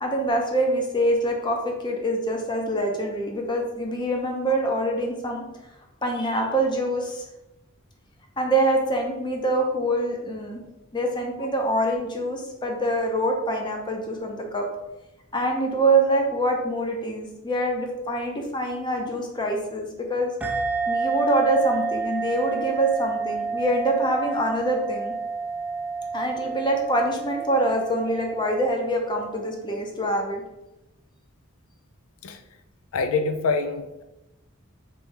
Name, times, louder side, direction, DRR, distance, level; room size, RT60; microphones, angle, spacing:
voice 1, 0.0-5.4 6.0-7.2 8.4-10.6 10.9-14.6 15.3-20.3 20.9-25.1 26.1-30.4, right 1 dB, 20° left, 2 dB, 0.7 m, -25 dB
sound 1, 20.4-29.5, right 4 dB, 5° right, 0.3 m, -30 dB
voice 2, 32.9-34.0, left 4 dB, 85° left, 8 dB, 0.4 m, -26 dB
3.2 x 3.2 x 4.7 m, 0.97 s
head